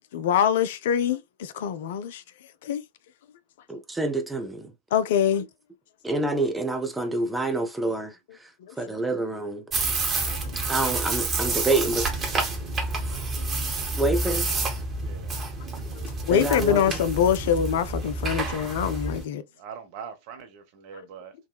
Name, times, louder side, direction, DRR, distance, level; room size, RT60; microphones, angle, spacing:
voice 1, 0.1-2.2 2.6-2.8 4.9-5.5 8.6-8.7 10.4-10.5 13.4-13.7 15.9-19.4, left 9 dB, 55° left, 0.3 m, -25 dB
voice 2, 3.7-4.7 6.0-8.1 8.8-9.6 10.7-12.0 14.0-14.5 16.3-17.0, right 2 dB, 5° right, 0.5 m, -27 dB
sound 1, 9.7-19.2, right 3 dB, 25° right, 1.0 m, -29 dB
voice 3, 10.4-10.9 11.2-12.1 14.9-15.4 19.5-21.3, right 7 dB, 45° right, 0.7 m, -44 dB
3.3 x 2.1 x 2.2 m
figure-of-eight pair, 90°, 0 cm